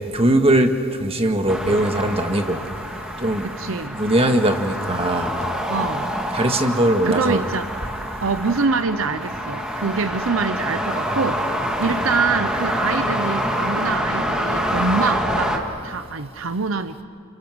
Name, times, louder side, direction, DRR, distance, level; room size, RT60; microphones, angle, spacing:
voice 1, 0.1-0.7 1.0-2.6 3.2-3.5 3.9-5.3 6.3-7.4, right 1 dB, 30° right, 5 dB, 1.7 m, -20 dB
sound 1, 1.5-15.6, equal, 5° right, 2.3 m, -26 dB
voice 2, 3.4-4.0 5.7-6.1 6.4-6.7 7.0-7.7 8.2-17.0, right 4 dB, 70° right, 11 dB, 0.8 m, -25 dB
29.5 x 29.0 x 6.3 m, 2.2 s
head